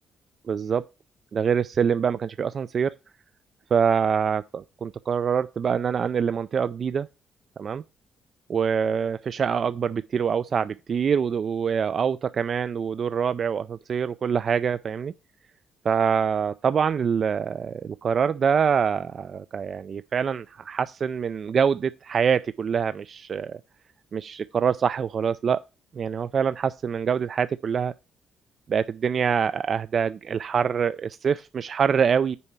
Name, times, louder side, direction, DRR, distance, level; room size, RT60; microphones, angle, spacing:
voice 1, 0.5-0.8 1.3-2.9 3.7-7.1 7.6-7.8 8.5-15.1 15.8-23.6 24.1-25.6 25.9-27.9 28.7-32.4, right 7 dB, 50° right, 0.3 m, -25 dB
6.9 x 4.4 x 6.6 m
cardioid pair, 90°, 0 cm